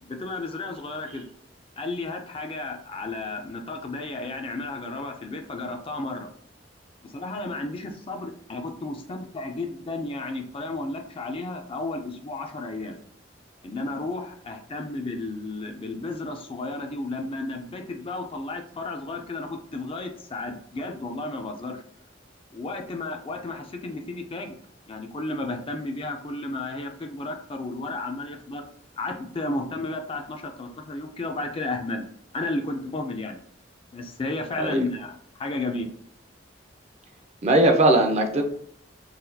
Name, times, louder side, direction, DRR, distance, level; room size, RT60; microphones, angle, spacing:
voice 1, 0.0-1.2 1.8-6.3 7.0-12.9 13.6-21.8 22.5-24.5 24.9-28.6 29.0-32.1 32.3-33.4 33.9-35.9, left 2 dB, 30° left, 4 dB, 0.4 m, -33 dB
voice 2, 37.4-38.4, right 1 dB, 35° right, 4 dB, 0.5 m, -19 dB
4.0 x 2.3 x 2.7 m, 0.66 s
head